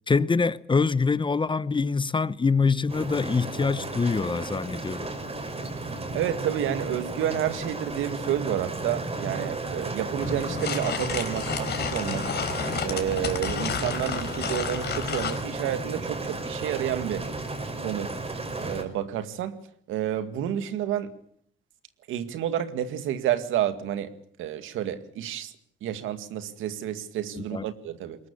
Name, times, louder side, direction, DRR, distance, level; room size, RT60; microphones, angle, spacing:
voice 1, 0.1-5.1 27.5-27.6, left 4 dB, 25° left, 1.0 m, -24 dB
sound 1, 2.9-18.8, right 2 dB, 30° right, 5.8 m, -34 dB
voice 2, 6.1-12.3 12.8-17.3 17.8-18.1 18.6-19.6 19.9-21.1 22.1-24.1 24.4-25.5 25.8-28.2, right 10 dB, 90° right, 2.1 m, -30 dB
sound 2, 10.2-15.4, left 7 dB, 55° left, 3.9 m, -31 dB
22.0 x 19.5 x 8.7 m
cardioid pair, 90°, 20 cm